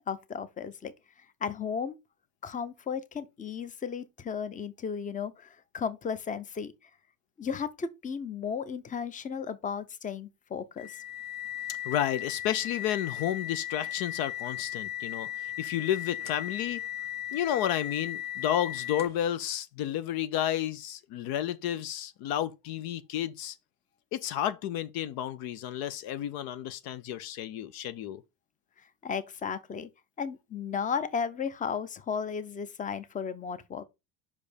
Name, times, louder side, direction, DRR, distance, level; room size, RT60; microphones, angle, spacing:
voice 1, 0.1-0.9 1.4-2.0 2.4-6.7 7.4-11.0 29.0-29.9 30.2-33.8, left 6 dB, 20° left, 0.7 m, -34 dB
sound 1, 10.8-19.3, left 12 dB, 40° left, 1.2 m, -37 dB
voice 2, 11.8-16.8 17.3-23.6 24.1-28.2, left 11 dB, 65° left, 0.7 m, -31 dB
5.4 x 5.0 x 5.0 m
supercardioid pair, 115°, 39 cm